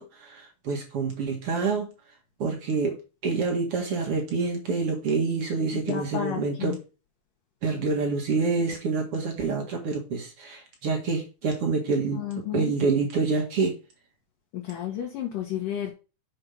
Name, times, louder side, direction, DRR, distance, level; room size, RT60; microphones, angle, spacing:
voice 1, 0.0-1.9 2.4-3.0 3.2-6.8 7.6-12.2 12.5-13.8, right 4 dB, 45° right, 1 dB, 2.0 m, -27 dB
voice 2, 5.7-6.8 12.1-12.7 14.5-15.9, left 11 dB, 60° left, -1 dB, 2.6 m, -32 dB
7.2 x 5.5 x 5.6 m, 0.32 s
omnidirectional pair, 5.1 m